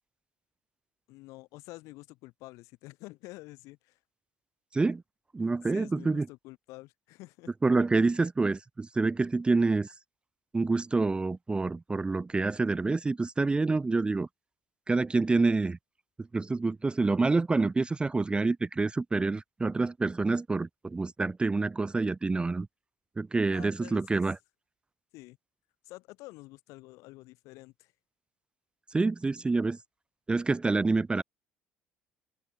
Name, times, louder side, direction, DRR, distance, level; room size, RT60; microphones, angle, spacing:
voice 1, 1.1-4.0 5.7-7.5 23.5-24.2 25.1-25.4 25.8-27.9, left 21 dB, 75° left, 6.0 m, -48 dB
voice 2, 5.3-6.3 7.6-9.9 10.5-14.3 14.9-15.8 16.3-22.7 23.2-24.4 28.9-29.8 30.3-31.2, right 3 dB, 20° right, 0.4 m, -27 dB
hypercardioid pair, 65°, 5 cm